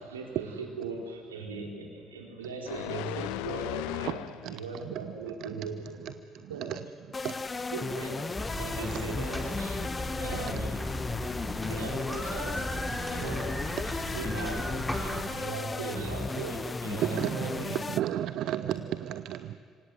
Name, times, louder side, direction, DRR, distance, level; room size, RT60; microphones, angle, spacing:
voice 1, 0.1-4.2 4.5-6.0 6.5-6.7 7.7-10.8 11.7-13.5 13.8-17.8 18.6-18.8, right 4 dB, 85° right, 4.0 m, -39 dB
sound 1, 2.7-4.7 5.1-5.3, left 17 dB, 70° left, 0.6 m, -36 dB
sound 2, 7.1-18.0, left 4 dB, 30° left, 1.2 m, -35 dB
sound 3, 8.3-15.2, left 1 dB, 10° left, 5.6 m, -36 dB
voice 2, 17.0-19.6, right 12 dB, 60° right, 0.7 m, -32 dB
26.5 x 25.5 x 8.1 m
figure-of-eight pair, 50°, 0 cm